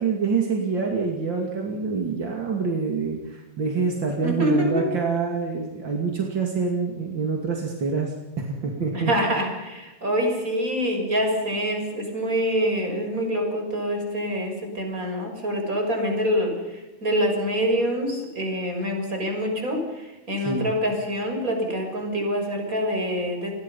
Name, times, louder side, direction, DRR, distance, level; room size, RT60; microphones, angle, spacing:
voice 1, 0.0-9.1 20.4-20.7, right 5 dB, 35° right, 1 dB, 2.0 m, -26 dB
voice 2, 4.2-4.9 8.9-23.5, equal, 15° right, 3 dB, 6.1 m, -25 dB
29.5 x 21.0 x 5.6 m, 1.1 s
omnidirectional pair, 5.8 m